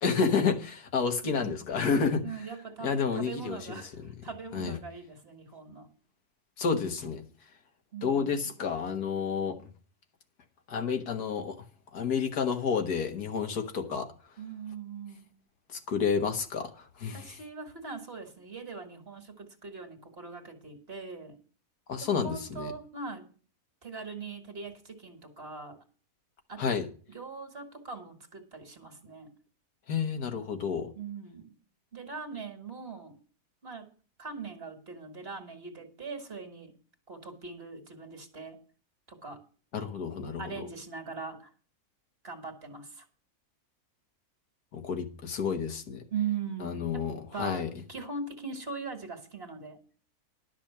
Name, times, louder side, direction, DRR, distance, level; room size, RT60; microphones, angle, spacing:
voice 1, 0.0-2.3 2.8-3.9 4.5-4.8 6.6-7.2 8.0-9.6 10.7-11.6 11.9-14.1 15.7-17.4 21.9-22.7 26.6-26.9 29.9-30.9 39.7-40.7 44.7-46.1 46.6-47.7, left 6 dB, 85° left, 1.9 m, -30 dB
voice 2, 1.2-1.6 2.2-5.9 7.9-8.5 14.4-15.3 17.1-21.4 22.0-23.3 23.8-25.8 26.5-26.8 27.1-29.3 31.0-31.5 31.9-33.1 33.6-33.9 34.2-36.7 37.1-38.6 39.1-39.4 40.4-41.5 42.2-43.1 46.1-47.0 47.3-49.8, right 5 dB, 40° right, 2.0 m, -40 dB
11.5 x 6.1 x 7.1 m
omnidirectional pair, 1.6 m